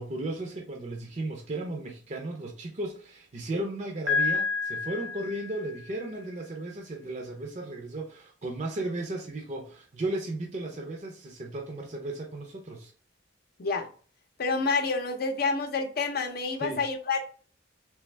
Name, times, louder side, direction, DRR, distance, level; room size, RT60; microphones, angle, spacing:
voice 1, 0.0-12.9 16.6-16.8, right 2 dB, 40° right, 0.6 m, -35 dB
Piano, 4.1-6.0, left 5 dB, 90° right, 1.3 m, -29 dB
voice 2, 14.4-17.2, left 4 dB, 50° left, 0.6 m, -28 dB
3.4 x 3.3 x 3.2 m
head